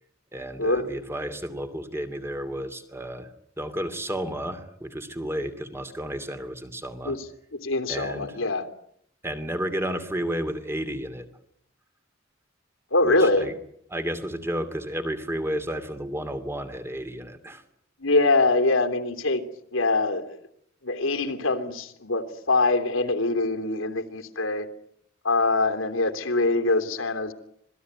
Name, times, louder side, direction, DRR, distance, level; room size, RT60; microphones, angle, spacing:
voice 1, 0.3-7.2 7.9-8.4 9.2-11.3 13.0-13.5 13.9-17.6, right 1 dB, 10° right, 9 dB, 2.8 m, -32 dB
voice 2, 7.6-8.7 12.9-13.5 18.0-19.4 19.7-20.4 20.8-24.7 25.2-27.3, left 2 dB, 85° left, 7 dB, 3.2 m, -23 dB
26.5 x 20.0 x 9.7 m, 0.73 s
head